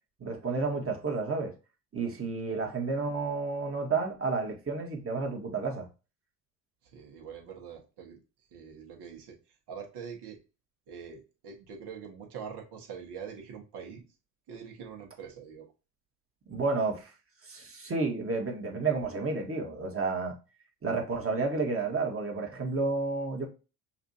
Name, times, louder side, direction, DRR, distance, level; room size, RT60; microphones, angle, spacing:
voice 1, 0.2-1.5 1.9-5.9 16.5-17.1 17.4-20.3 20.8-23.5, right 4 dB, 25° right, 1.6 m, -31 dB
voice 2, 6.8-8.2 8.5-10.4 10.9-14.0 14.5-15.7, right 7 dB, 55° right, 1.6 m, -44 dB
5.8 x 2.7 x 2.7 m
hypercardioid pair, 65°, 48 cm